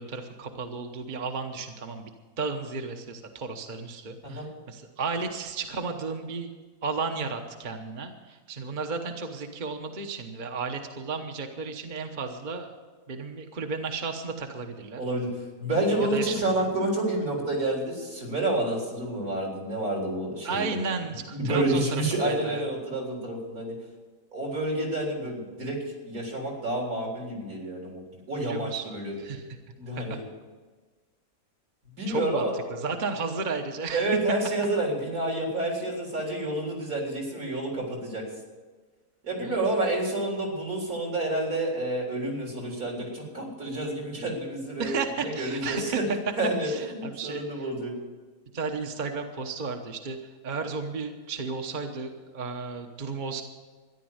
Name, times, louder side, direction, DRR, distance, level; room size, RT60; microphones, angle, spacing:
voice 1, 0.0-6.5 6.8-12.7 13.1-15.1 16.1-16.4 20.4-22.6 28.4-29.4 29.9-30.2 32.1-32.4 32.7-34.0 39.4-39.6 44.8-46.0 46.6-47.6 48.5-53.4, right 4 dB, 35° right, 4 dB, 1.1 m, -33 dB
voice 2, 14.9-15.3 15.6-20.6 21.3-23.7 24.3-25.8 26.0-29.2 29.8-30.2 31.9-32.5 33.9-38.2 39.2-44.9 45.2-46.0 46.4-47.9, right 1 dB, 75° right, -1 dB, 4.4 m, -29 dB
13.5 x 10.5 x 7.9 m, 1.4 s
omnidirectional pair, 1.5 m